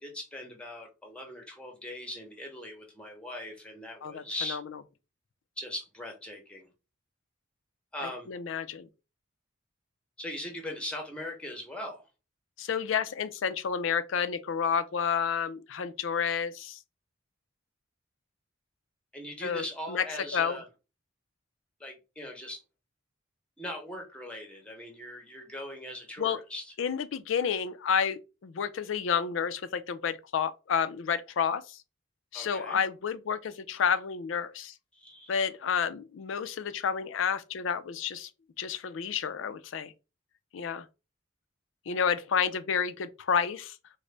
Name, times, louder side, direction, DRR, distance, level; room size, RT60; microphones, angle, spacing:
voice 1, 0.0-4.6 5.6-6.7 7.9-8.3 10.2-12.0 19.1-20.6 21.8-22.6 23.6-26.7 32.3-32.8 34.9-35.3, left 1 dB, 5° left, 0.7 m, -40 dB
voice 2, 8.0-8.9 12.6-16.8 19.4-20.0 20.3-20.6 26.2-26.4 26.8-31.8 32.3-34.7 35.3-38.3 38.6-39.9 40.5-40.9 41.9-43.8, left 7 dB, 70° left, 0.4 m, -30 dB
3.8 x 2.1 x 3.2 m
head